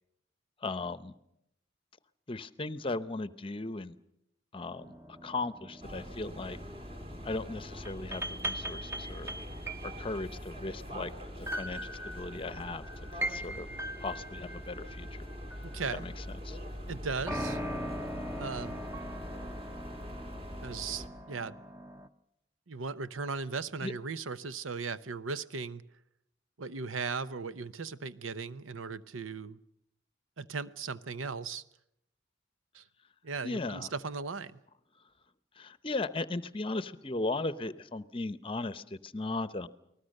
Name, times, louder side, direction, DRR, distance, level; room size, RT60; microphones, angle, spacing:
voice 1, 0.6-1.1 2.3-4.0 4.5-4.9 5.2-6.6 7.2-9.3 9.8-11.1 11.4-12.8 13.1-13.7 14.0-15.2 15.9-16.6 23.8-23.9 33.4-33.9 35.5-39.7, left 2 dB, 25° left, 15 dB, 0.8 m, -37 dB
sound 1, 4.7-16.4 17.3-22.1, right 1 dB, 15° right, 0.9 m, -41 dB
sound 2, 5.8-21.1, equal, 30° right, 2.3 m, -43 dB
voice 2, 15.6-16.1 16.9-17.6 18.3-18.8 20.6-21.6 22.7-25.8 26.6-29.6 30.4-31.6 32.7-32.8 33.2-34.6, right 4 dB, 90° right, 15 dB, 0.8 m, -37 dB
29.5 x 19.5 x 6.6 m, 0.79 s
head